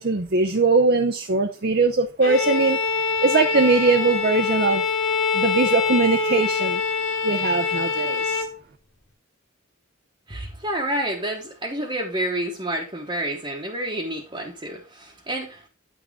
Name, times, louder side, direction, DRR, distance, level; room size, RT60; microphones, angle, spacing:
voice 1, 0.0-4.8 5.3-6.8 7.2-8.5, right 3 dB, 50° right, 0.7 m, -21 dB
Bowed string instrument, 2.2-8.6, left 4 dB, 85° left, 1.9 m, -24 dB
voice 2, 10.3-15.6, right 1 dB, 25° right, 1.1 m, -29 dB
9.4 x 6.3 x 3.5 m
head